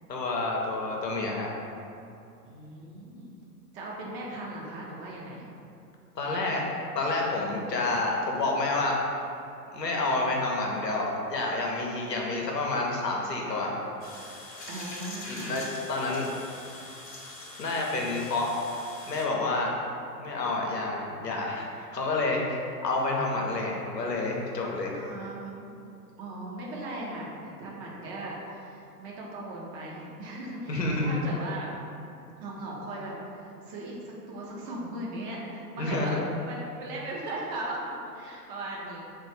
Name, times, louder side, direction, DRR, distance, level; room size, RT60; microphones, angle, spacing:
voice 1, 0.1-1.5 6.2-6.7 6.9-9.0 9.7-13.8 15.3-15.6 15.9-16.3 16.5-16.6 17.6-18.5 19.1-19.8 20.2-25.0 30.7-31.1 35.8-36.2, left 2 dB, 90° left, -1 dB, 0.7 m, -29 dB
voice 2, 2.4-3.3 3.7-5.5 7.5-7.7 14.7-15.6 24.9-25.7 26.2-31.7 32.4-33.1 33.4-39.0, right 1 dB, 35° right, -3 dB, 0.7 m, -38 dB
sound 1, 14.0-19.2, left 2 dB, 25° left, 0.7 m, -43 dB
3.1 x 2.5 x 3.9 m, 2.6 s
figure-of-eight pair, 100°, 48 cm